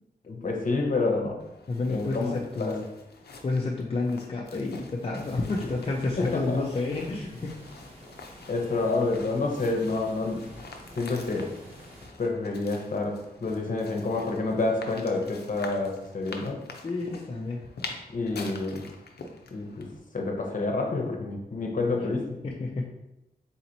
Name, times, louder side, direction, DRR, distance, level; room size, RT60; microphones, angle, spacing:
voice 1, 0.3-1.4 1.9-2.7 6.2-6.6 8.5-10.4 11.0-11.5 12.2-16.6 18.1-18.9 19.5-19.9 20.1-22.4, left 3 dB, 55° left, 1 dB, 0.9 m, -28 dB
sound 1, 1.4-20.0, left 4 dB, 80° left, 0.6 m, -46 dB
voice 2, 1.7-2.9 3.4-7.6 16.8-17.7 22.4-22.9, left 3 dB, 35° left, -2 dB, 0.5 m, -30 dB
sound 2, 5.2-12.1, right 1 dB, 35° right, 1.2 m, -49 dB
4.1 x 2.9 x 3.9 m, 0.90 s
wide cardioid pair, 105°, 16 cm